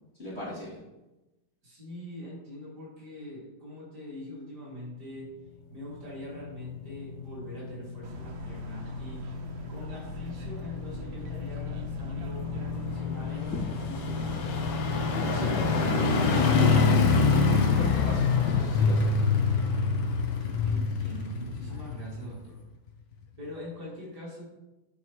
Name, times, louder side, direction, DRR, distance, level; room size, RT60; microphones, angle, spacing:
voice 1, 0.2-0.8 15.1-17.0 17.4-19.2, left 1 dB, 30° left, -9 dB, 3.0 m, -37 dB
voice 2, 1.6-5.3 5.7-9.2 9.7-14.5 20.6-22.6 23.4-24.5, left 1 dB, 55° right, -7 dB, 3.3 m, -43 dB
sound 1, 6.0-22.5 22.9-23.0, left 4 dB, 80° left, 1.7 m, -27 dB
sound 2, 8.0-15.5, right 4 dB, 85° right, 1.7 m, -44 dB
Fireworks, 13.3-22.6, left 2 dB, 65° left, 2.6 m, -43 dB
10.0 x 5.3 x 3.1 m, 1.0 s
omnidirectional pair, 2.1 m